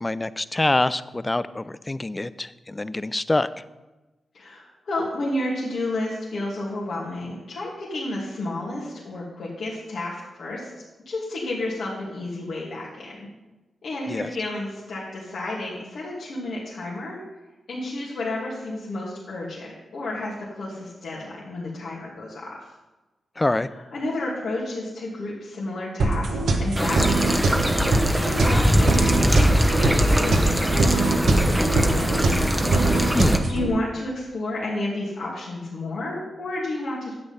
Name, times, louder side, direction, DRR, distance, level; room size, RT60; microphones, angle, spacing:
voice 1, 0.0-3.5 14.1-14.3 23.4-23.7 33.1-33.5, left 2 dB, 20° left, 15 dB, 0.5 m, -25 dB
voice 2, 4.3-10.7 11.1-13.3 13.8-17.2 17.7-22.6 23.7-27.4 27.8-32.6 33.0-37.1, left 2 dB, 70° left, -6 dB, 2.4 m, -31 dB
sound 1, 26.0-33.7, right 2 dB, 80° right, 1.3 m, -23 dB
sound 2, 26.8-33.4, equal, 5° right, 1.0 m, -22 dB
10.5 x 7.9 x 5.5 m, 1.1 s
cardioid pair, 70°, 0 cm